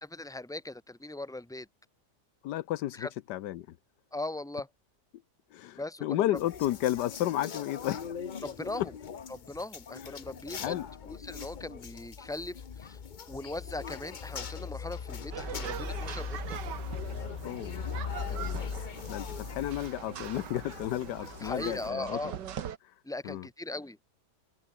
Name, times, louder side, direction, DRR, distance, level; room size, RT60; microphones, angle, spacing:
voice 1, 0.0-1.7 2.9-3.1 4.1-4.7 5.8-6.3 8.4-8.9 9.3-10.8 11.1-13.0 13.3-16.6 21.4-22.3 23.0-24.0, left 2 dB, ahead, 2.5 m, -39 dB
voice 2, 2.4-3.7 5.5-8.1 8.8-8.9 10.6-10.9 17.4-17.8 18.3-18.7 19.1-22.2 23.2-23.5, left 14 dB, 85° left, 1.3 m, -32 dB
sound 1, 6.3-21.9, left 7 dB, 40° left, 0.7 m, -40 dB
sound 2, 15.3-22.8, right 9 dB, 90° right, 1.9 m, -42 dB
omnidirectional pair, 1.8 m